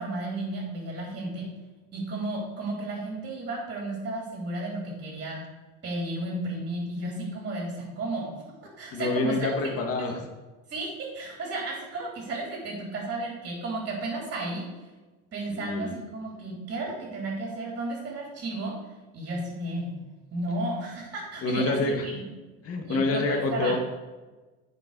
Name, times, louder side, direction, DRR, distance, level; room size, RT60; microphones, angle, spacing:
voice 1, 0.0-1.5 1.9-5.4 5.8-8.3 8.8-9.6 10.0-10.1 10.7-14.6 15.3-18.7 19.1-19.9 20.3-22.3 22.8-23.7, right 2 dB, 30° right, -2 dB, 3.4 m, -33 dB
voice 2, 8.9-10.2 15.5-16.0 21.4-22.1 22.6-23.8, left 3 dB, 45° left, 3 dB, 1.6 m, -27 dB
9.1 x 5.2 x 6.6 m, 1.2 s
cardioid pair, 120°, 34 cm